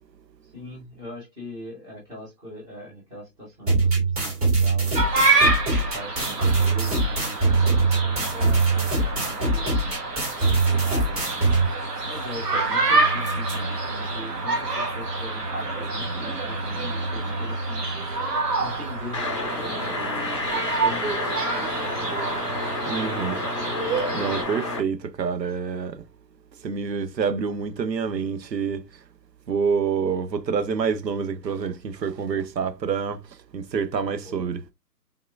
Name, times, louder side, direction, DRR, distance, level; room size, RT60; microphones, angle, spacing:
voice 1, 0.5-5.1 5.7-9.8 10.5-11.4 12.0-17.8 18.6-19.2 19.5-21.1 21.5-22.5 34.1-34.4, left 1 dB, 5° right, 0.8 m, -41 dB
sound 1, 3.7-11.7, right 3 dB, 25° right, 1.9 m, -22 dB
sound 2, 4.9-24.4, right 3 dB, 70° right, 1.5 m, -27 dB
sound 3, 19.1-24.8, left 2 dB, 20° left, 0.6 m, -30 dB
voice 2, 22.9-23.4 24.1-26.0 26.6-28.8 29.5-33.2 33.5-34.6, right 6 dB, 90° right, 0.8 m, -27 dB
3.7 x 3.0 x 2.3 m
hypercardioid pair, 150°, 49 cm